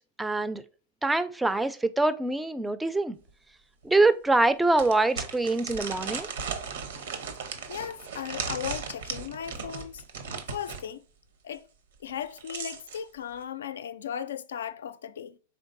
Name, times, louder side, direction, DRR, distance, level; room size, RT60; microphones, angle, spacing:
voice 1, 0.2-0.6 1.0-3.2 3.8-6.3, right 2 dB, 10° right, 0.4 m, -24 dB
sound 1, 3.3-3.4 3.8-3.9 4.8-10.9 12.1-13.0, right 5 dB, 75° right, 0.8 m, -36 dB
voice 2, 7.7-10.0 10.5-11.0 11.4-11.7 12.0-15.4, left 9 dB, 80° left, 0.4 m, -36 dB
4.5 x 3.5 x 2.5 m
hypercardioid pair, 115°, 0 cm